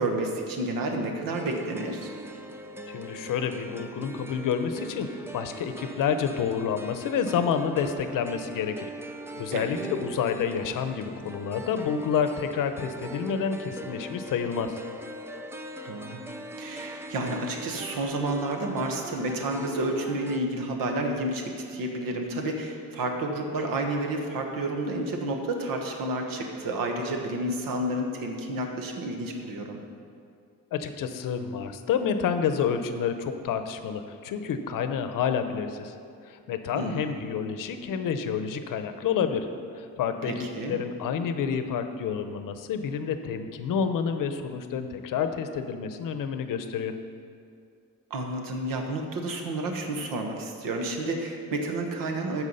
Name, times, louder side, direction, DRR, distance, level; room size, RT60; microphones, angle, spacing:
voice 1, 0.0-2.1 9.5-9.9 15.8-16.2 16.6-29.8 36.7-37.1 40.3-40.8 48.1-52.4, right 1 dB, 75° right, 3 dB, 1.4 m, -30 dB
sound 1, 1.3-20.4, right 1 dB, 10° right, 0.4 m, -41 dB
voice 2, 2.9-8.9 9.4-14.8 30.7-36.0 36.2-39.5 39.7-46.9, left 7 dB, 65° left, 8 dB, 0.8 m, -29 dB
14.0 x 4.7 x 5.5 m, 2.3 s
cardioid pair, 145°, 34 cm